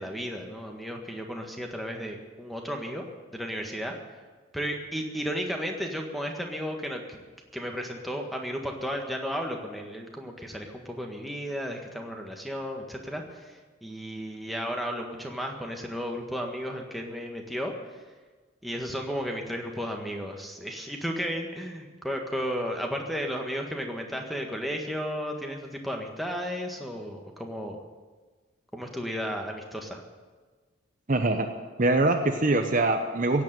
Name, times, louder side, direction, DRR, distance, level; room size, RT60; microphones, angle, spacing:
voice 1, 0.0-3.1 3.3-4.0 4.5-7.2 7.5-18.0 18.6-27.8 28.7-30.0, equal, ahead, 2 dB, 1.6 m, -34 dB
voice 2, 31.1-31.5 31.8-33.4, right 2 dB, 40° right, 5 dB, 0.9 m, -23 dB
16.5 x 8.5 x 9.2 m, 1.4 s
head